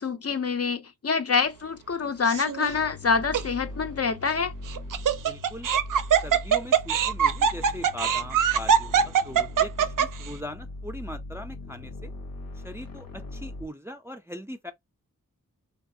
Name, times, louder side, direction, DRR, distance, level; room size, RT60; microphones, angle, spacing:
voice 1, 0.0-4.5, left 5 dB, 45° left, 0.5 m, -26 dB
Laughter, 2.3-2.7 3.3-3.4 4.7-10.3, right 8 dB, 65° right, 0.5 m, -22 dB
sound 1, 2.7-13.7, left 2 dB, 75° left, 0.9 m, -40 dB
voice 2, 5.2-5.7 6.2-9.0 9.2-12.1 12.6-14.7, equal, 10° right, 0.4 m, -40 dB
2.6 x 2.3 x 2.6 m
wide cardioid pair, 60°, 35 cm